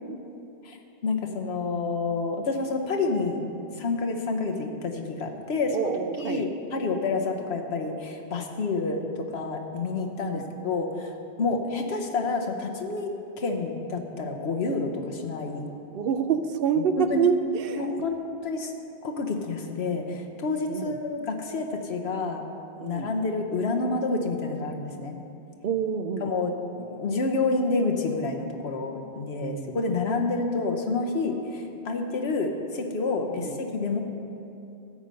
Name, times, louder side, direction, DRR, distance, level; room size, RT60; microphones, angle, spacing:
voice 1, 1.0-3.4 3.8-11.1 11.4-13.1 13.4-15.7 16.9-17.3 17.8-18.7 19.0-22.4 22.8-25.2 26.2-34.0, left 3 dB, 80° left, 3 dB, 1.3 m, -29 dB
voice 2, 5.7-6.4 10.2-10.4 15.9-17.9 20.7-20.9 22.8-23.1 25.6-26.3 29.4-29.8 33.3-33.6, right 7 dB, 65° right, 8 dB, 0.8 m, -27 dB
13.5 x 5.4 x 7.6 m, 2.7 s
omnidirectional pair, 1.1 m